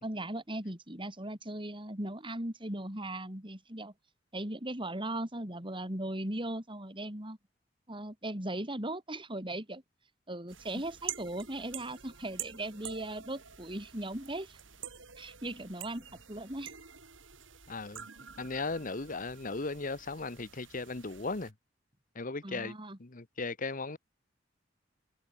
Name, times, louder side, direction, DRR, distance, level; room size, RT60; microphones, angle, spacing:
voice 1, 0.0-3.9 4.3-7.4 7.9-9.8 10.3-14.6 15.2-16.0 16.3-16.7 22.4-23.0, right 1 dB, 25° right, 5.5 m, -38 dB
sound 1, 10.5-21.5, right 9 dB, 85° right, 7.8 m, -47 dB
voice 2, 17.7-18.1 18.4-21.5 22.1-22.7 23.0-24.0, left 3 dB, 45° left, 1.3 m, -37 dB
head